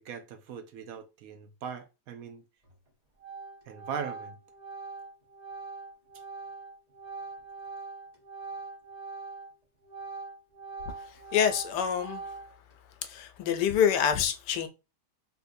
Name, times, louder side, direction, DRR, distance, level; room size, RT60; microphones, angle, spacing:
voice 1, 0.0-2.4 3.7-4.4, right 7 dB, 70° right, 0.9 m, -40 dB
Organ, 2.6-2.9 3.2-9.5 9.8-12.7, right 4 dB, 25° right, 1.1 m, -42 dB
voice 2, 11.3-12.2 13.0-14.7, left 8 dB, 85° left, 1.2 m, -26 dB
3.5 x 2.6 x 2.5 m
omnidirectional pair, 1.8 m